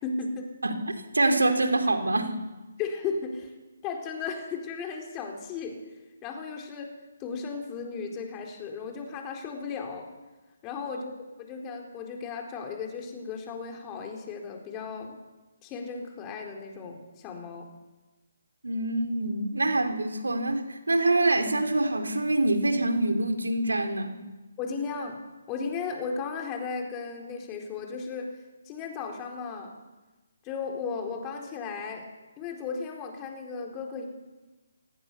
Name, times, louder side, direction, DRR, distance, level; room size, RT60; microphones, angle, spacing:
voice 1, 0.0-0.5 2.8-3.5 3.8-5.8 6.2-6.9 7.2-10.1 10.6-15.2 15.6-17.7 24.6-25.2 25.5-28.3 28.7-29.7 30.4-32.1 32.4-34.1, left 5 dB, 20° left, 2 dB, 4.2 m, -35 dB
voice 2, 0.6-2.3 10.9-11.0 18.6-24.2, right 2 dB, 80° right, 5 dB, 3.6 m, -25 dB
25.5 x 19.5 x 7.0 m, 1.2 s
figure-of-eight pair, 145°, 0 cm